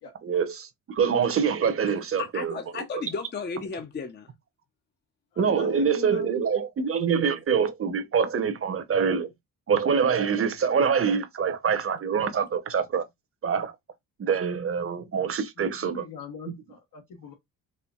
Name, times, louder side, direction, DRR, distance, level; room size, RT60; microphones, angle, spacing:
voice 1, 0.2-2.6 5.4-9.3 9.7-13.1 13.4-13.7 14.2-16.1, right 6 dB, 35° right, 0.8 m, -25 dB
voice 2, 2.2-4.3, left 5 dB, 30° left, 0.6 m, -34 dB
voice 3, 5.3-6.4 15.9-17.3, left 7 dB, 70° left, 1.1 m, -40 dB
4.3 x 2.5 x 2.3 m
cardioid pair, 85°, 37 cm